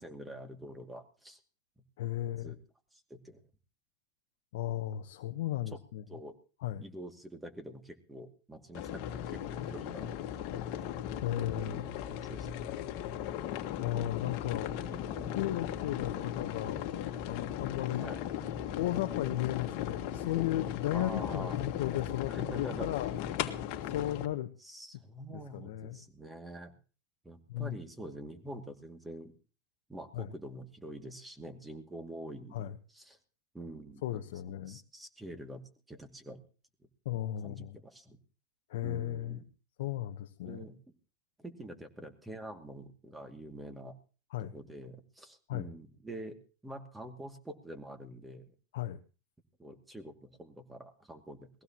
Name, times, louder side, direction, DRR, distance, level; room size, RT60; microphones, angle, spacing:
voice 1, 0.0-1.4 2.4-2.6 2.9-3.4 4.9-5.0 5.7-5.8 6.1-6.3 6.8-10.2 11.5-13.0 14.8-15.4 17.9-18.2 20.9-21.6 22.3-22.9 24.6-26.7 27.2-29.3 29.9-33.2 33.5-35.6 35.9-36.4 36.8-36.9 37.4-38.2 38.8-39.5 40.4-40.8 41.4-43.9 44.4-46.4 46.6-48.5 49.6-51.6, right 1 dB, 10° right, 6 dB, 2.4 m, -46 dB
voice 2, 2.0-2.5 4.5-6.0 6.6-6.8 11.2-11.9 13.8-14.7 15.3-16.8 17.3-18.1 18.7-23.1 23.9-24.5 25.3-26.0 27.5-27.8 30.1-30.3 32.5-32.7 34.0-34.8 37.0-37.8 38.7-39.4 39.8-40.6 44.3-44.5 45.5-45.7 48.7-49.0, left 13 dB, 75° left, 5 dB, 1.0 m, -35 dB
sound 1, 8.7-24.3, left 10 dB, 60° left, 1.6 m, -37 dB
20.5 x 16.0 x 3.0 m, 0.35 s
hypercardioid pair, 105°, 0 cm